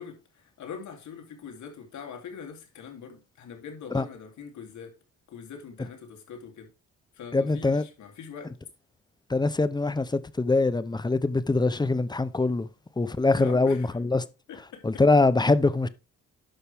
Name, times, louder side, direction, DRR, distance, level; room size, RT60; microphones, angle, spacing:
voice 1, 0.0-4.9 5.3-6.7 7.1-8.5 13.3-14.0 14.5-14.8, left 6 dB, 70° left, 3.1 m, -42 dB
voice 2, 7.3-7.8 9.3-12.7 13.0-14.2 14.8-15.9, left 3 dB, 15° left, 0.7 m, -23 dB
11.5 x 5.7 x 3.5 m
cardioid pair, 90°, 30 cm